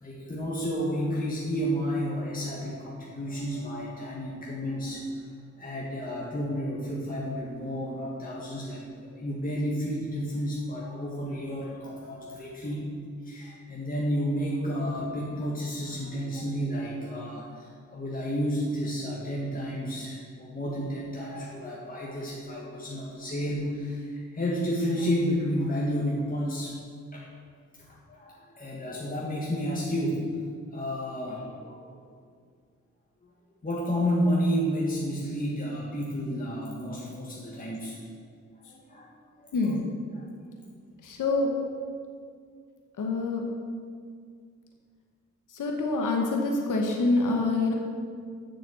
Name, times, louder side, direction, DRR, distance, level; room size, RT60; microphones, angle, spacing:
voice 1, 0.0-5.0 5.6-12.9 13.2-26.8 27.1-27.3 27.8-30.3 30.7-31.9 33.6-38.0 38.7-39.5 40.2-40.3, equal, 25° left, -5 dB, 1.8 m, -31 dB
voice 2, 39.5-39.9 41.0-41.5 43.0-43.4 45.5-47.7, left 3 dB, 85° left, 1 dB, 1.2 m, -26 dB
7.2 x 6.9 x 7.0 m, 2.1 s
cardioid pair, 60°, 31 cm